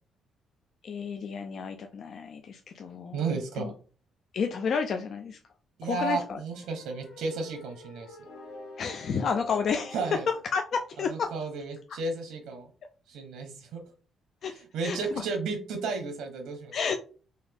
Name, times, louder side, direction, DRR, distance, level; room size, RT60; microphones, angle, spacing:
voice 1, 0.8-3.3 3.6-3.7 4.3-5.4 5.8-6.4 8.8-10.2 10.5-11.3 14.4-15.0 16.7-16.9, left 6 dB, 40° left, 5 dB, 0.3 m, -31 dB
voice 2, 3.1-3.7 5.8-8.2 9.9-10.2 11.1-12.7 13.1-13.8 14.7-16.7, right 4 dB, 75° right, 4 dB, 0.8 m, -33 dB
sound 1, 6.5-10.5, left 2 dB, 85° left, 1.5 m, -47 dB
4.0 x 2.6 x 3.4 m, 0.38 s
cardioid pair, 175°, 0 cm